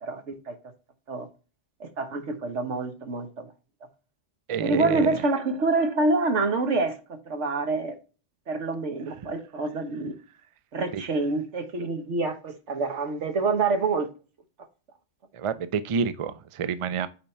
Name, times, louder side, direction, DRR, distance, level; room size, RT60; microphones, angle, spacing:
voice 1, 0.0-0.6 1.1-1.3 1.8-3.5 4.6-8.0 8.5-10.2 10.7-14.1, right 3 dB, 80° right, 1.4 m, -27 dB
voice 2, 4.5-5.2 9.2-9.3 10.9-11.0 15.3-17.1, right 6 dB, 55° right, 0.3 m, -28 dB
8.7 x 3.7 x 4.3 m
omnidirectional pair, 1.2 m